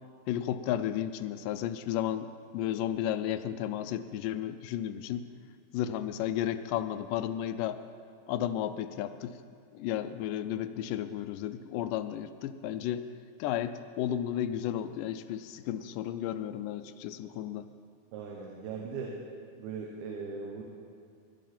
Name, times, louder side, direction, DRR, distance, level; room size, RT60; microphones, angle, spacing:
voice 1, 0.3-2.3 2.5-5.3 5.7-7.8 8.3-9.4 9.7-13.1 13.4-17.7, left 11 dB, 80° left, 9 dB, 1.9 m, -33 dB
voice 2, 18.1-19.2 19.6-20.6, right 5 dB, 90° right, -1 dB, 3.0 m, -39 dB
17.5 x 11.0 x 4.3 m, 2.3 s
omnidirectional pair, 4.3 m